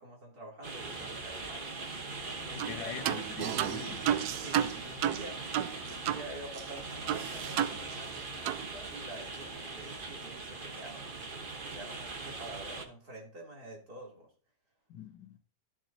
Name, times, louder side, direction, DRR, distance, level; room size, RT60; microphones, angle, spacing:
voice 1, 0.0-1.7 2.4-3.1 4.4-5.4 5.8-14.3, right 1 dB, 55° right, 3.4 m, -47 dB
sound 1, 0.6-12.9, right 3 dB, 35° right, 1.1 m, -41 dB
voice 2, 2.4-4.1 14.9-15.4, left 9 dB, 90° left, 1.6 m, -43 dB
sound 2, 2.6-2.8 3.0-6.3 6.5-6.6 7.1-8.2 8.4-8.6, right 10 dB, 70° right, 1.0 m, -32 dB
13.5 x 7.4 x 2.7 m
omnidirectional pair, 2.0 m